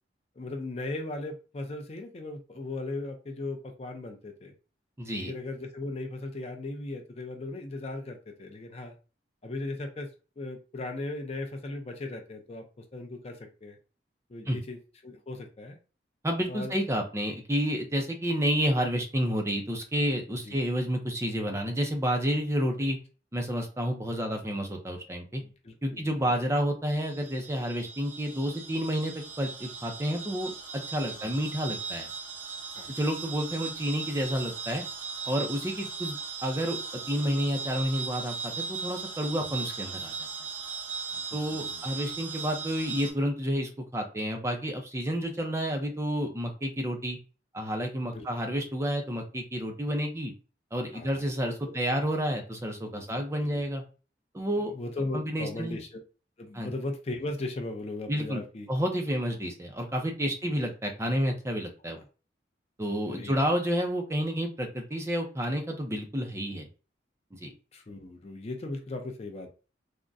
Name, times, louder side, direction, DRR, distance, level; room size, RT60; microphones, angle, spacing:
voice 1, 0.4-4.5 5.2-8.9 9.4-10.1 10.4-13.8 14.3-15.8 16.5-16.7 20.4-20.5 25.4-26.4 31.2-31.3 32.7-32.9 38.8-38.9 41.1-41.9 48.0-48.3 50.9-51.2 52.9-53.7 54.7-56.0 56.4-58.7 63.1-63.4 67.7-69.5, left 2 dB, 35° left, 4 dB, 0.5 m, -38 dB
voice 2, 5.0-5.3 14.5-14.6 16.2-23.0 23.3-25.4 25.8-32.1 32.9-34.8 35.3-40.3 41.3-47.2 47.5-50.3 50.7-53.8 54.3-54.7 55.1-55.8 56.5-56.7 58.1-58.4 58.7-62.0 62.8-66.7 67.4-67.5, equal, 15° right, 3 dB, 0.5 m, -30 dB
sound 1, 26.9-43.1, right 5 dB, 45° right, 1.4 m, -38 dB
3.5 x 2.1 x 2.5 m, 0.34 s
head